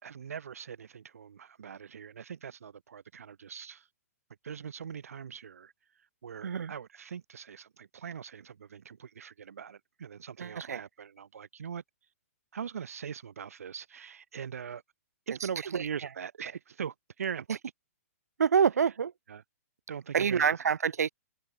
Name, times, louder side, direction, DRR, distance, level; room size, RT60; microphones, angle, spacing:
voice 1, 0.0-3.9 4.4-5.7 6.2-11.8 12.5-14.8 15.3-17.5 19.3-19.4 19.9-20.5, right 7 dB, 65° right, 2.3 m, -41 dB
voice 2, 10.4-10.8 15.7-15.8 18.4-19.1 20.1-21.1, right 7 dB, 85° right, 1.3 m, -26 dB
hypercardioid pair, 175°, 8 cm